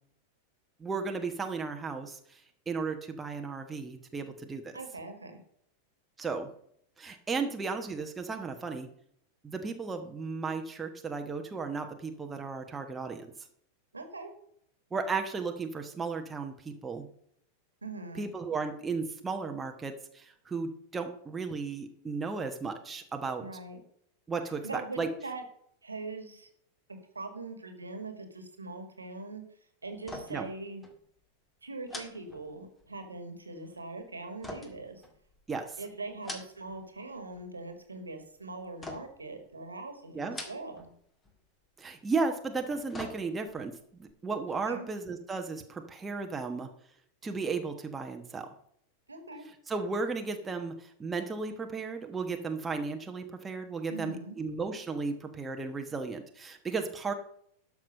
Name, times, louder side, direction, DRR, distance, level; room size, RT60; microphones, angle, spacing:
voice 1, 0.8-2.4 2.7-4.7 6.2-6.5 7.0-8.9 9.4-13.3 14.9-17.1 18.2-23.4 24.3-25.1 30.3-30.5 35.5-35.8 40.1-40.4 41.8-46.7 47.2-48.5 49.7-57.1, right 4 dB, 15° right, 4 dB, 1.2 m, -35 dB
voice 2, 4.7-5.4 13.9-14.3 17.8-18.3 23.4-23.8 24.6-25.4 25.8-26.5 27.2-29.4 29.8-30.8 31.6-35.0 35.8-40.9 44.7-44.9 49.1-49.5 53.9-54.4, right 3 dB, 80° right, 7 dB, 1.8 m, -41 dB
sound 1, 30.0-30.6 30.8-31.0 31.9-33.0 34.4-35.5 36.1-36.8 37.2-37.7 38.8-39.3 40.2-40.9 41.2-41.4 42.5-43.6 44.0-44.1, left 1 dB, 10° left, 1.8 m, -44 dB
12.0 x 6.1 x 5.3 m, 0.68 s
figure-of-eight pair, 90°, 0 cm